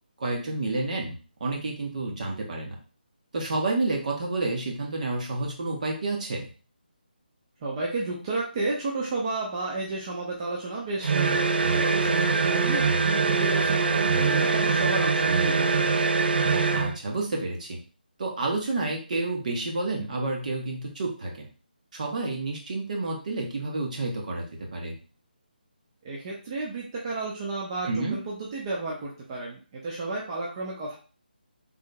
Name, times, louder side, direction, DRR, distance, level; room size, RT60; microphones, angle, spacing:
voice 1, 0.2-1.1 1.4-2.8 3.3-6.5 16.7-17.8 18.2-21.5 21.9-24.9 27.9-28.2, right 2 dB, 50° right, 0 dB, 1.1 m, -29 dB
voice 2, 7.6-15.8 26.0-31.0, right 3 dB, 30° right, -4 dB, 0.7 m, -32 dB
sound 1, 11.0-17.0, right 4 dB, 75° right, 0.4 m, -23 dB
3.7 x 3.6 x 2.2 m, 0.37 s
figure-of-eight pair, 160°, 5 cm